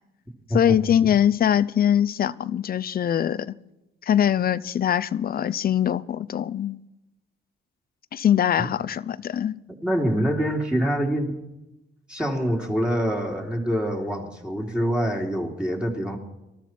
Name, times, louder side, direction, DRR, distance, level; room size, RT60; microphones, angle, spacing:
voice 1, 0.5-3.6 4.1-6.8 8.1-9.6, left 10 dB, 50° left, 0.6 m, -22 dB
voice 2, 9.8-11.4 12.1-16.2, equal, 5° right, 2.9 m, -25 dB
19.5 x 13.5 x 4.4 m
cardioid pair, 90°, 20 cm